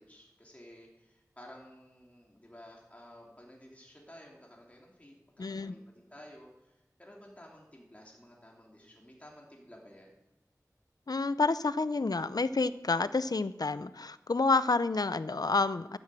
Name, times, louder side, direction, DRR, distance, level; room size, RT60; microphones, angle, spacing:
voice 1, 0.0-10.2, equal, 20° left, -2 dB, 3.1 m, -54 dB
voice 2, 5.4-5.7 11.1-16.0, left 3 dB, 70° left, 14 dB, 0.6 m, -29 dB
13.0 x 10.0 x 7.6 m, 0.95 s
wide cardioid pair, 40°, 7 cm